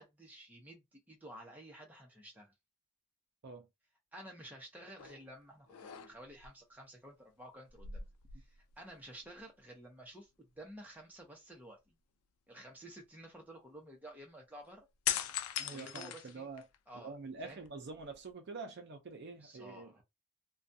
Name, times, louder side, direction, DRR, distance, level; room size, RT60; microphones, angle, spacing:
voice 1, 0.0-2.5 4.1-8.1 8.4-10.3 10.6-12.0 12.5-14.9 15.7-16.5 16.9-17.1 17.4-17.6 19.4-20.0, right 1 dB, 10° right, 0.7 m, -52 dB
sound 1, 5.0-5.3 5.7-6.5 7.7-8.9 9.2-9.4 15.0-16.9 17.4-18.3, left 10 dB, 85° left, 0.3 m, -40 dB
voice 2, 15.6-16.7 16.9-20.0, right 4 dB, 50° right, 0.5 m, -46 dB
2.4 x 2.2 x 2.6 m
head